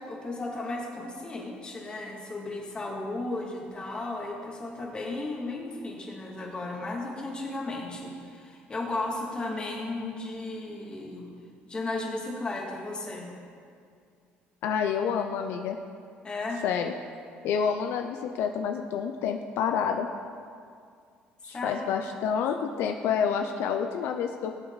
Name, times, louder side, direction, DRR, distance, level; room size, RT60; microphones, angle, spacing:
voice 1, 0.0-11.3 11.7-13.3 16.2-16.6 21.5-21.9, left 2 dB, 25° left, -2 dB, 2.5 m, -35 dB
voice 2, 14.6-15.8 16.6-16.9 17.4-20.1 21.4-24.5, left 7 dB, 75° left, 5 dB, 0.6 m, -28 dB
18.5 x 8.0 x 4.1 m, 2.3 s
cardioid pair, 120°, 4 cm